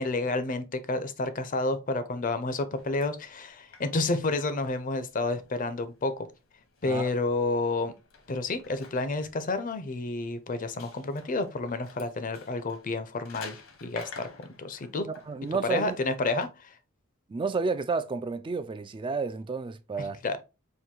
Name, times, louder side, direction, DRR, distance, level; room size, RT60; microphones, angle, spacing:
voice 1, 0.0-6.3 6.8-7.9 8.3-15.1 15.6-16.5 20.0-20.4, left 3 dB, 40° left, 0.6 m, -30 dB
sound 1, 2.7-16.5, left 4 dB, 70° left, 1.1 m, -51 dB
voice 2, 14.9-16.0 16.3-16.4 17.3-20.2, right 4 dB, 25° right, 0.3 m, -31 dB
4.4 x 2.6 x 3.7 m
head